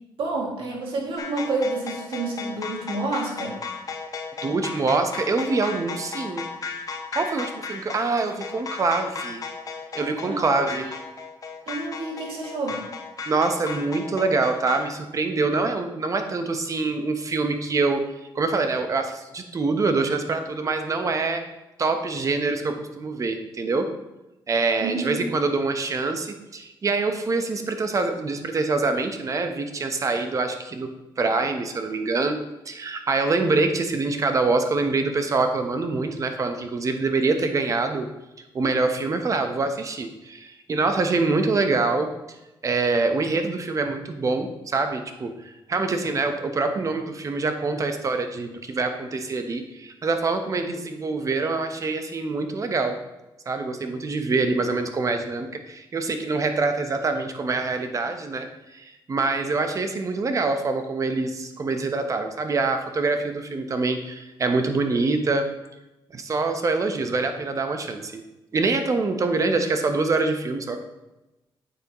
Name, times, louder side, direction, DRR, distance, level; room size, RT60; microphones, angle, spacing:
voice 1, 0.2-3.6 10.3-10.9 11.7-12.8 24.8-25.2, right 3 dB, 70° right, -2 dB, 2.4 m, -29 dB
sound 1, 1.2-14.8, left 5 dB, 40° left, 1.0 m, -35 dB
voice 2, 4.4-6.5 7.1-9.4 9.9-10.9 13.3-18.0 18.3-21.4 21.8-23.9 24.5-32.4 32.7-38.1 38.5-42.1 42.6-53.0 53.5-58.5 58.7-65.5 66.1-68.2 68.5-70.8, right 3 dB, 35° right, 6 dB, 1.0 m, -25 dB
9.1 x 7.1 x 3.1 m, 0.99 s
cardioid pair, 100°, 9 cm